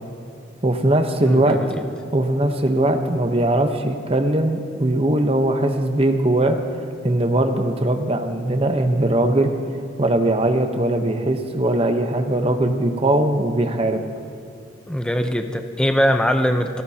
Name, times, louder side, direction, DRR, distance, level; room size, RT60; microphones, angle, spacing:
voice 1, 0.6-1.8 2.1-6.6 7.0-9.5 10.0-14.0, right 1 dB, 30° right, 5 dB, 0.9 m, -20 dB
voice 2, 1.2-1.8 14.9-16.8, equal, 5° left, 6 dB, 0.7 m, -21 dB
26.5 x 14.0 x 2.9 m, 2.7 s
head